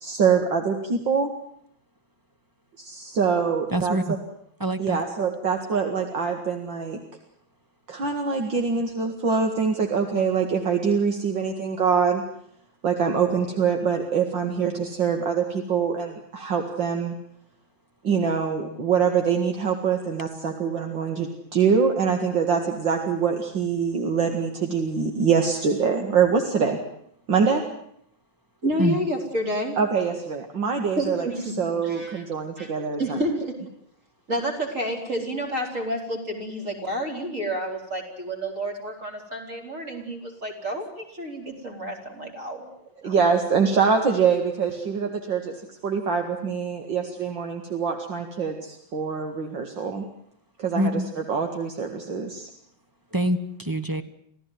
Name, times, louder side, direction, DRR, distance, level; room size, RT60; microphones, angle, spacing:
voice 1, 0.0-1.3 2.8-4.0 4.8-7.0 7.9-12.2 12.8-17.1 18.0-26.8 27.3-27.6 29.8-31.3 31.6-33.2 43.0-45.5 45.8-50.1 50.6-52.5, right 6 dB, 65° right, 4 dB, 2.7 m, -24 dB
voice 2, 3.7-4.1 4.6-5.0 28.8-29.0 50.7-51.0 53.1-54.0, equal, 15° right, 11 dB, 0.8 m, -25 dB
voice 3, 28.6-29.8 31.0-31.5 31.8-32.2 32.6-32.7 33.0-33.6 34.3-42.7 43.0-43.3, equal, 35° right, 1 dB, 4.9 m, -29 dB
26.5 x 16.5 x 9.4 m, 0.68 s
omnidirectional pair, 2.2 m